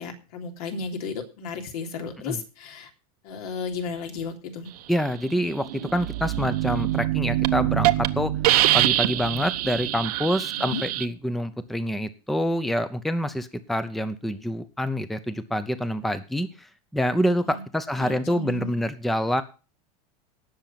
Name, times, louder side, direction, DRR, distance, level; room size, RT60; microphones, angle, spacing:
voice 1, 0.0-2.9 3.2-4.7 10.5-10.8 17.4-17.6 18.0-18.7, left 4 dB, 70° left, 4 dB, 3.4 m, -34 dB
voice 2, 4.9-8.3 8.7-19.4, equal, ahead, 13 dB, 0.7 m, -26 dB
sound 1, 5.3-10.8, right 14 dB, 55° right, 1.1 m, -29 dB
Hiss, 6.8-7.1 7.4-7.5 7.8-8.1 8.4-11.0, right 16 dB, 80° right, 1.0 m, -23 dB
18.0 x 6.6 x 5.9 m, 0.33 s
supercardioid pair, 150°, 20 cm